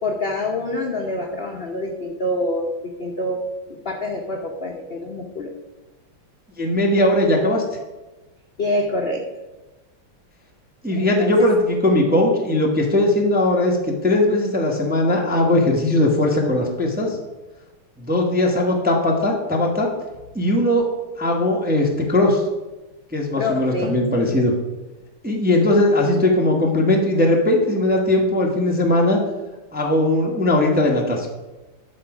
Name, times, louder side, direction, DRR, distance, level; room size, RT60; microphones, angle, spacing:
voice 1, 0.0-3.4 3.7-5.5 8.6-9.2 11.0-11.5 23.4-24.1, left 1 dB, 55° left, 1 dB, 0.6 m, -26 dB
voice 2, 6.6-7.6 10.8-17.2 18.0-19.9 20.3-20.9 21.2-22.4 23.1-24.5 25.2-29.2 29.7-31.3, left 1 dB, 5° right, 0 dB, 0.7 m, -19 dB
12.5 x 4.4 x 4.9 m, 1.1 s
omnidirectional pair, 2.4 m